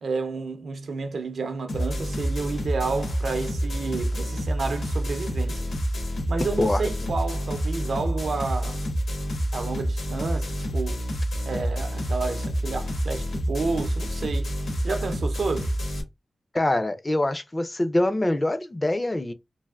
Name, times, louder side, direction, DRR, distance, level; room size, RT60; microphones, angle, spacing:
voice 1, 0.0-5.7 6.3-8.8 9.5-11.0 11.4-14.5 14.8-15.7, right 4 dB, 70° right, 0.5 m, -30 dB
sound 1, 1.7-16.0, equal, 85° left, 1.1 m, -28 dB
voice 2, 16.5-19.3, left 1 dB, 20° left, 0.3 m, -24 dB
3.3 x 2.4 x 2.3 m
wide cardioid pair, 120°, 0 cm